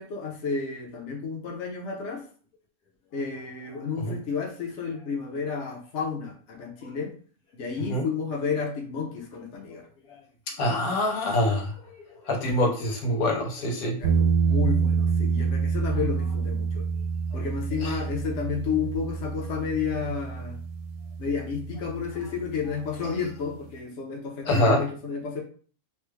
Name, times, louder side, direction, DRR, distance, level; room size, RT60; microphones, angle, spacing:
voice 1, 0.0-2.2 3.1-7.1 7.5-9.8 12.6-12.7 14.0-16.9 17.3-20.6 21.2-25.4, left 5 dB, 55° left, 0 dB, 1.0 m, -31 dB
voice 2, 9.7-10.2 10.5-14.0 17.8-18.0 24.4-24.8, left 1 dB, 90° left, -1 dB, 1.3 m, -26 dB
sound 1, 14.0-23.0, right 6 dB, 80° right, 1.0 m, -27 dB
3.4 x 2.2 x 3.1 m, 0.42 s
omnidirectional pair, 1.5 m